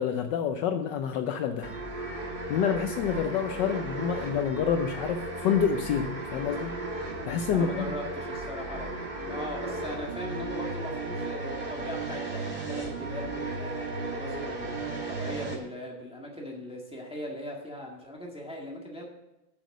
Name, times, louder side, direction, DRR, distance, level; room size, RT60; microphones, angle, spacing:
voice 1, 0.0-1.7 2.5-6.7 7.3-7.9, left 7 dB, 70° left, 7 dB, 1.2 m, -28 dB
sound 1, 1.6-15.6, right 2 dB, 30° right, 1.3 m, -35 dB
voice 2, 7.5-19.1, left 1 dB, 5° right, -1 dB, 1.5 m, -39 dB
8.1 x 6.3 x 6.5 m, 0.94 s
omnidirectional pair, 2.1 m